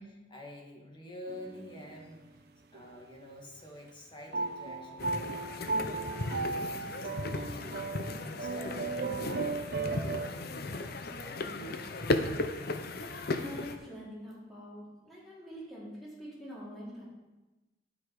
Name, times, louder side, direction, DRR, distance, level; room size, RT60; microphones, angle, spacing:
voice 1, 0.0-2.4 2.7-7.8 8.2-12.2, left 1 dB, 25° left, 0 dB, 1.9 m, -49 dB
sound 1, 1.3-2.0 2.7-3.3 4.3-10.3, right 3 dB, 60° right, 0.8 m, -36 dB
sound 2, 5.0-13.8, left 2 dB, 55° left, 0.7 m, -36 dB
voice 2, 12.9-17.0, equal, ahead, -8 dB, 3.8 m, -45 dB
10.5 x 8.2 x 4.7 m, 1.1 s
head